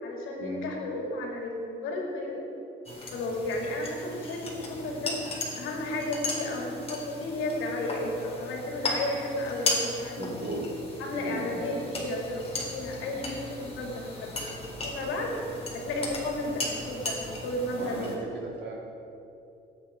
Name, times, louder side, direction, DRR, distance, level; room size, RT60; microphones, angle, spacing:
voice 1, 0.0-2.5 3.1-5.2 5.6-10.4 11.0-15.3 15.7-18.2, left 1 dB, 90° left, -1 dB, 3.4 m, -33 dB
sound 1, 2.9-18.2, left 2 dB, 30° left, 4.3 m, -36 dB
voice 2, 10.2-10.6 11.2-11.9 17.8-18.8, right 2 dB, 65° right, -3 dB, 4.0 m, -36 dB
20.0 x 10.0 x 4.9 m, 2.7 s
cardioid pair, 90°, 20 cm